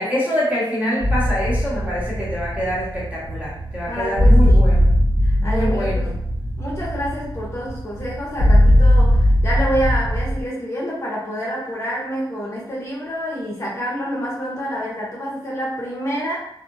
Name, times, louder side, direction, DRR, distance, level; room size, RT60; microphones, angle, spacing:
voice 1, 0.0-4.9 5.4-6.1, equal, 15° right, -7 dB, 1.1 m, -25 dB
sound 1, 1.0-10.4, equal, 65° right, 1.1 m, -18 dB
voice 2, 3.8-4.6 5.2-6.1 6.6-16.4, equal, 35° left, -5 dB, 0.8 m, -27 dB
2.5 x 2.4 x 2.6 m, 0.76 s
wide cardioid pair, 100°, 9 cm